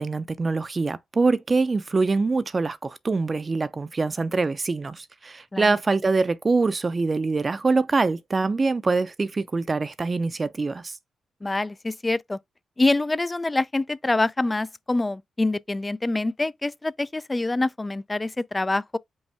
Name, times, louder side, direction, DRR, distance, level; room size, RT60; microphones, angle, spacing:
voice 1, 0.0-11.0, right 3 dB, 40° right, 0.6 m, -24 dB
voice 2, 11.4-12.4 12.8-19.0, left 2 dB, 25° left, 0.4 m, -25 dB
5.4 x 2.2 x 3.3 m
supercardioid pair, 45°, 0 cm